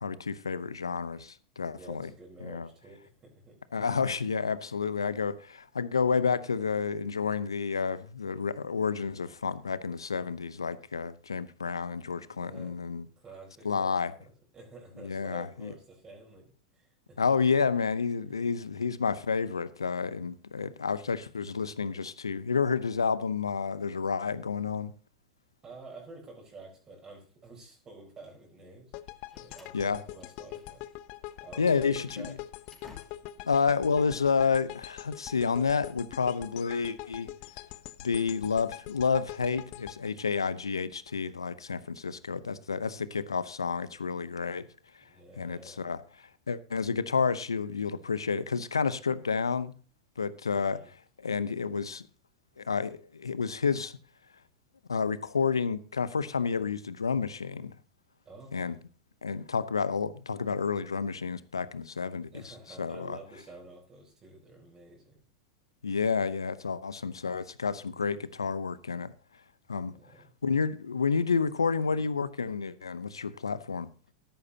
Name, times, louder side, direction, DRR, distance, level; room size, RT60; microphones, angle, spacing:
voice 1, 0.0-2.1 2.4-2.7 3.7-13.0 13.6-14.1 15.0-15.7 17.2-24.9 29.7-30.0 31.6-32.3 33.5-37.3 38.0-44.7 45.4-46.0 46.5-49.7 50.2-52.0 52.6-54.0 54.9-57.7 58.5-58.8 59.2-63.2 65.8-69.1 69.7-70.0 70.4-73.9, left 5 dB, 90° left, 0.8 m, -30 dB
voice 2, 1.7-3.6 12.3-12.7 13.2-17.2 17.7-17.8 25.6-28.9 29.3-30.8 31.4-32.4 45.1-45.9 50.5-50.9 58.2-58.8 62.3-65.2 69.9-70.2, right 2 dB, 25° right, 4.2 m, -50 dB
sound 1, 28.9-41.1, left 15 dB, 50° left, 0.7 m, -44 dB
Slam, 28.9-31.0 31.2-31.4 31.9-33.5, left 3 dB, 5° left, 4.5 m, -57 dB
13.0 x 11.0 x 2.8 m
hypercardioid pair, 95°, 2 cm